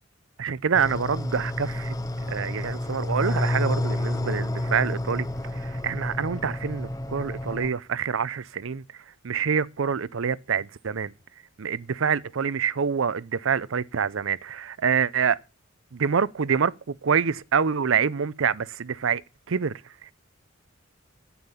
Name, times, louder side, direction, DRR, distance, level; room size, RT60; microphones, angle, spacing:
voice 1, 0.4-1.9 2.3-5.3 5.5-8.8 9.2-11.1 11.6-15.4 15.9-19.2 19.5-19.7 20.0-20.1, right 6 dB, 70° right, 0.5 m, -26 dB
sound 1, 0.7-7.7, left 1 dB, 15° left, 0.6 m, -30 dB
9.8 x 8.7 x 5.6 m
head